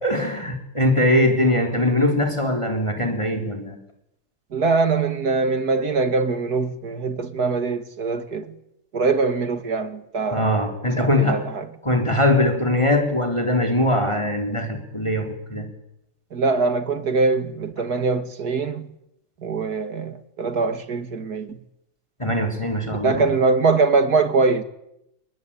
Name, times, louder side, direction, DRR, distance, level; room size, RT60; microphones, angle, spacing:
voice 1, 0.0-3.8 10.3-11.4 11.8-15.7 22.2-23.3, left 1 dB, 15° left, 3.9 m, -21 dB
voice 2, 4.5-8.5 8.9-10.5 11.0-11.7 16.3-18.9 19.4-21.6 23.0-24.6, right 4 dB, 55° right, 2.6 m, -22 dB
29.5 x 21.5 x 9.0 m
omnidirectional pair, 2.0 m